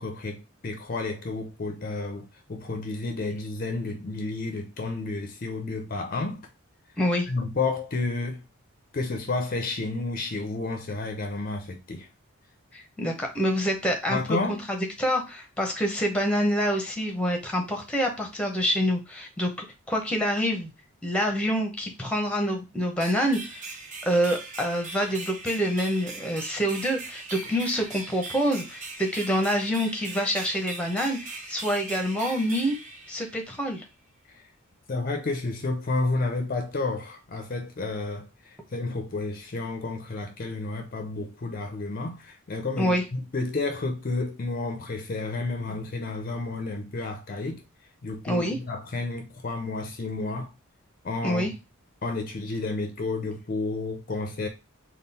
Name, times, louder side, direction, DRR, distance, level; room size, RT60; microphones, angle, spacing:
voice 1, 0.0-6.5 7.3-8.4 8.9-12.1 14.1-14.6 34.3-34.5 34.9-47.6 48.0-50.5 51.0-51.5 52.0-54.5, left 3 dB, 40° left, 0.5 m, -31 dB
voice 2, 7.0-7.3 12.7-14.2 14.7-19.5 19.9-20.7 21.0-23.6 24.0-32.8 33.1-33.8 42.8-43.0 48.2-48.6 51.2-51.5, equal, 5° left, 0.7 m, -26 dB
sound 1, 23.0-33.7, right 3 dB, 35° right, 0.6 m, -40 dB
3.7 x 2.3 x 4.0 m
head